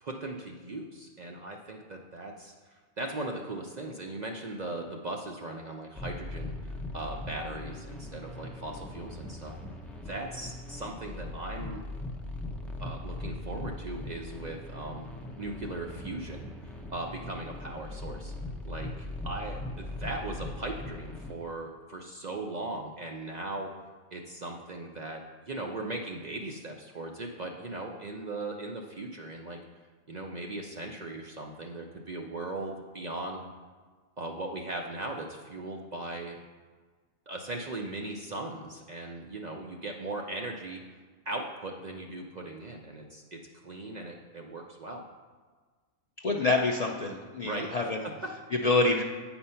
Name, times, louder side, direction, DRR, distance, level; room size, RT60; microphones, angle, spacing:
voice 1, 0.0-9.6 10.0-11.8 12.8-15.1 15.4-18.3 18.7-23.7 24.1-29.6 30.1-33.5 34.2-36.4 37.3-40.8 41.3-45.0 47.4-47.7 48.0-48.3, right 2 dB, 55° right, 1 dB, 0.5 m, -38 dB
sound 1, 5.9-21.3, left 2 dB, ahead, 0.4 m, -40 dB
voice 2, 46.2-48.1 48.5-49.0, left 3 dB, 70° left, 0 dB, 0.3 m, -26 dB
8.5 x 4.4 x 5.5 m, 1.4 s
omnidirectional pair, 1.3 m